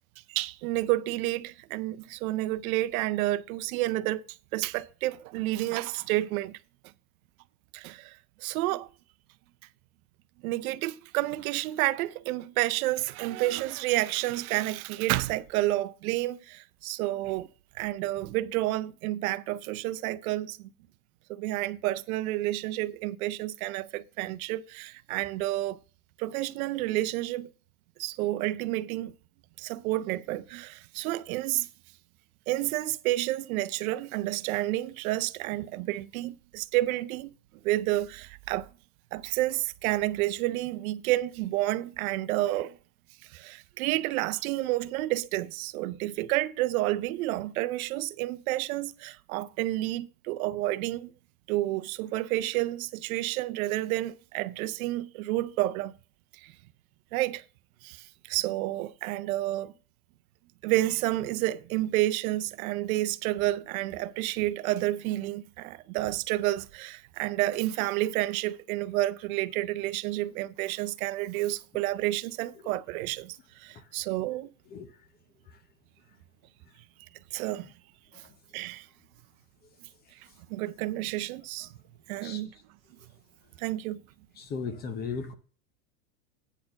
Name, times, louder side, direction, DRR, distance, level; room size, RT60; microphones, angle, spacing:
voice 1, 0.3-4.2 4.5-6.6 7.7-8.9 10.4-17.5 17.7-20.7 21.3-25.8 26.2-27.5 28.0-29.1 29.6-31.7 32.5-37.3 37.6-38.7 39.1-42.8 43.3-51.1 51.5-55.9 56.3-56.5 57.1-57.4 57.8-59.7 60.6-74.5 77.3-77.7 78.2-78.3 78.5-78.9 80.5-81.7 82.1-82.5 83.6-84.0, right 16 dB, 70° right, 0.7 m, -30 dB
voice 2, 84.4-85.3, left 5 dB, 20° left, 0.7 m, -37 dB
9.2 x 4.4 x 6.8 m
supercardioid pair, 165°, 44 cm